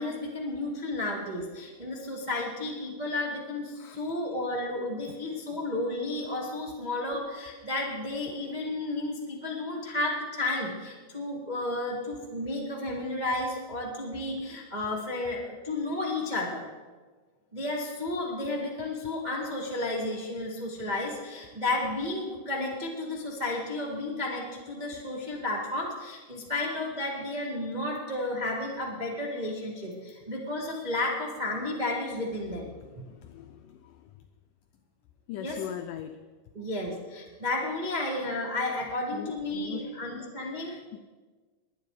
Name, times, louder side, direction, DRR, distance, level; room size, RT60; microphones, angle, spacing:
voice 1, 0.0-16.7 17.5-32.7 35.4-35.6 36.5-40.7, left 2 dB, 80° right, -3 dB, 0.4 m, -32 dB
voice 2, 32.8-34.0 35.3-36.2 39.1-39.9 40.5-41.0, left 10 dB, 85° left, 7 dB, 1.8 m, -41 dB
21.0 x 9.4 x 4.8 m, 1.4 s
omnidirectional pair, 4.5 m